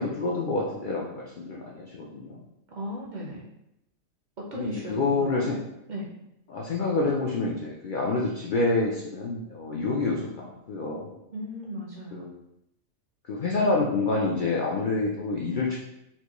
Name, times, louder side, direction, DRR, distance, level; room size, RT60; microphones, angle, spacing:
voice 1, 0.0-2.4 4.5-5.6 6.5-11.2 12.1-12.3 13.3-15.8, left 3 dB, 80° left, -3 dB, 0.4 m, -27 dB
voice 2, 2.7-3.4 4.4-5.6 5.9-6.1 11.3-12.2, equal, 50° right, -4 dB, 0.5 m, -36 dB
4.4 x 2.2 x 2.9 m, 0.83 s
omnidirectional pair, 1.5 m